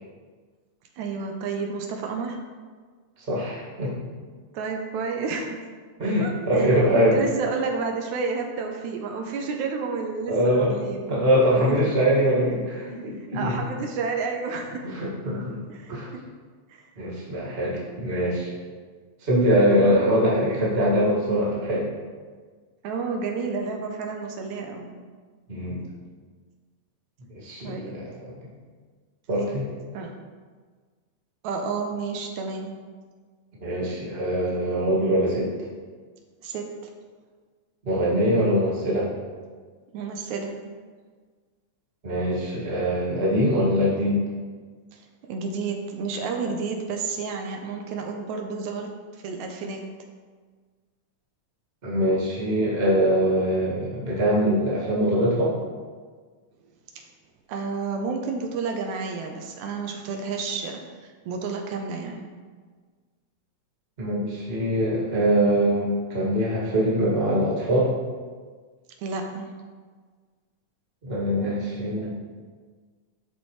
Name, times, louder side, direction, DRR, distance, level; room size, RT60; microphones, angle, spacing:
voice 1, 1.0-2.4 4.5-5.6 6.2-11.1 11.5-11.9 13.3-14.8 15.7-16.2 16.7-16.9 17.3-17.4 19.6-19.9 22.8-25.0 27.6-28.0 29.9-30.1 31.4-32.8 36.4-36.7 39.9-40.7 44.9-45.0 45.3-49.9 57.0-57.1 57.5-62.3 69.0-69.5, right 4 dB, 80° right, 2 dB, 2.1 m, -31 dB
voice 2, 3.2-3.9 6.0-7.3 10.3-10.8 11.1-13.5 14.8-15.6 15.9-16.1 16.9-18.5 19.2-21.9 25.5-25.8 27.3-28.1 28.4-28.5 29.3-29.7 33.6-35.5 37.8-39.1 42.0-44.2 51.8-55.5 64.0-67.9 71.0-72.1, equal, 25° right, -6 dB, 1.7 m, -23 dB
12.5 x 4.4 x 3.2 m, 1.5 s
omnidirectional pair, 3.3 m